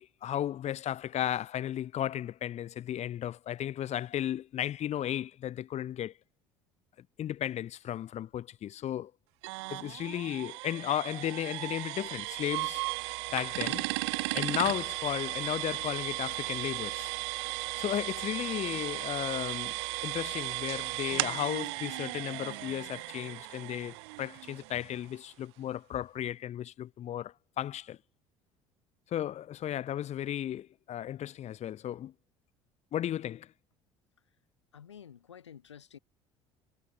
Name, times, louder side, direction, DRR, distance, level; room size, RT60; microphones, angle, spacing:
voice 1, 0.0-6.2 7.2-9.1 9.7-12.8 13.3-13.9 14.3-17.1 17.8-19.8 20.0-28.0 29.1-32.1 32.9-33.5, left 11 dB, 50° left, 4.2 m, -34 dB
sound 1, 9.4-25.1, right 27 dB, 70° right, 1.4 m, -36 dB
voice 2, 34.7-36.0, left 8 dB, 85° left, 5.9 m, -50 dB
hypercardioid pair, 60°, 14 cm